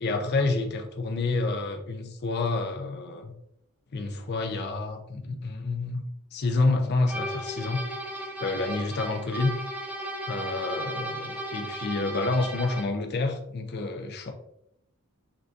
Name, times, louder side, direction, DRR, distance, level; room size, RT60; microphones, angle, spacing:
voice 1, 0.0-3.3 3.9-7.8 8.4-9.6 10.3-14.3, left 3 dB, 50° left, 4 dB, 0.4 m, -28 dB
sound 1, 7.1-13.0, right 1 dB, 5° right, 0.7 m, -35 dB
5.8 x 2.6 x 2.4 m, 0.80 s
head